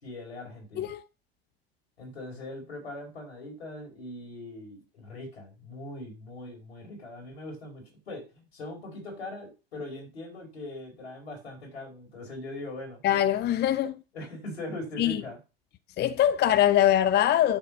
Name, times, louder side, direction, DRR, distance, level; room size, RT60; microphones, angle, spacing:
voice 1, 0.0-0.9 2.0-13.0 14.1-15.4, left 1 dB, 85° left, 4.5 m, -41 dB
voice 2, 13.0-14.0 15.0-15.2 16.0-17.6, left 11 dB, 35° left, 0.6 m, -23 dB
10.5 x 4.1 x 7.1 m
hypercardioid pair, 80°, 31 cm